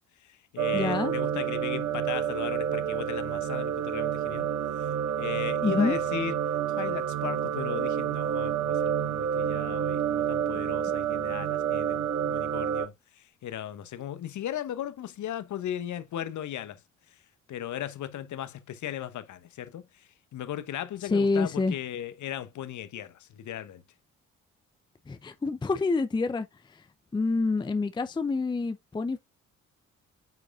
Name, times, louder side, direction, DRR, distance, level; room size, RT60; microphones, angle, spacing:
voice 1, 0.2-4.5 4.8-4.9 5.2-6.3 6.8-16.8 17.5-23.8, left 11 dB, 45° left, 1.0 m, -37 dB
sound 1, 0.6-12.9, right 9 dB, 45° right, 1.4 m, -29 dB
voice 2, 0.7-1.1 5.6-6.0 21.0-21.8 25.1-26.8 27.1-29.2, left 3 dB, 10° left, 0.6 m, -27 dB
9.3 x 4.7 x 2.4 m
figure-of-eight pair, 40°, 39 cm